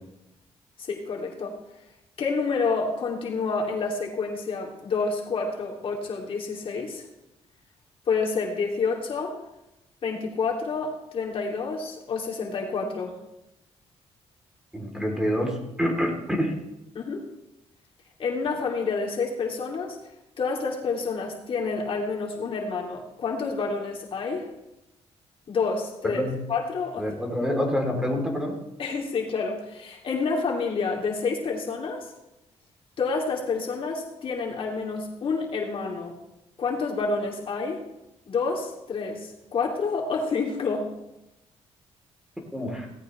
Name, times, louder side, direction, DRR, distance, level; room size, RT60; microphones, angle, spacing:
voice 1, 0.8-1.6 2.2-7.0 8.1-9.4 10.0-13.1 16.9-17.2 18.2-20.0 20.4-24.5 25.5-26.2 26.5-27.1 27.4-27.5 28.8-32.1 33.0-36.2 36.6-37.8 38.3-40.9, left 4 dB, 55° left, -1 dB, 2.8 m, -28 dB
voice 2, 14.7-16.6 26.1-26.4 27.0-28.6 42.5-42.9, equal, 5° right, 1 dB, 3.4 m, -27 dB
17.5 x 16.0 x 3.3 m, 0.91 s
cardioid pair, 115°, 11 cm